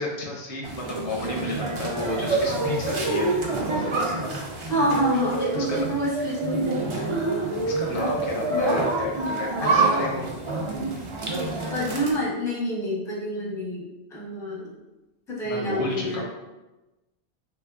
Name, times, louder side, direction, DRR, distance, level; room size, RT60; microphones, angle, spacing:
voice 1, 0.0-3.3 5.5-5.9 7.6-10.3 15.4-16.2, left 2 dB, 85° left, -2 dB, 1.0 m, -32 dB
sound 1, 0.6-12.1, right 2 dB, 55° right, 0.3 m, -27 dB
voice 2, 4.7-6.6 6.9-7.1 8.5-8.9 9.5-10.0 11.7-14.7 15.3-16.2, equal, 5° left, -5 dB, 0.6 m, -27 dB
3.5 x 2.6 x 2.3 m, 1.0 s
omnidirectional pair, 1.1 m